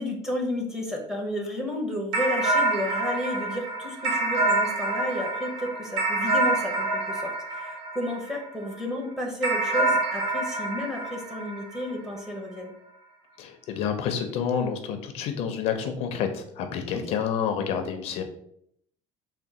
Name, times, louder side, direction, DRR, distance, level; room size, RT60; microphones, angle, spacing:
voice 1, 0.0-12.7 16.9-17.1, left 1 dB, 5° right, 0 dB, 0.6 m, -32 dB
sound 1, 2.1-8.7 9.4-12.2, right 2 dB, 85° right, 0.9 m, -27 dB
voice 2, 13.4-18.2, left 7 dB, 55° left, 6 dB, 0.4 m, -29 dB
3.5 x 2.2 x 4.1 m, 0.70 s
cardioid pair, 160°, 13 cm